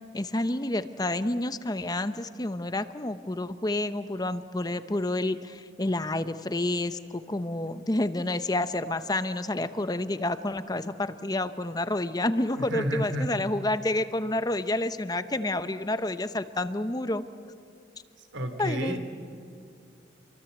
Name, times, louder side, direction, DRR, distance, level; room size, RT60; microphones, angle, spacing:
voice 1, 0.1-17.2 18.6-19.0, left 1 dB, 20° left, 11 dB, 0.8 m, -29 dB
voice 2, 12.3-13.3 18.3-19.0, equal, 90° right, 6 dB, 3.1 m, -32 dB
29.5 x 23.5 x 8.2 m, 2.5 s
head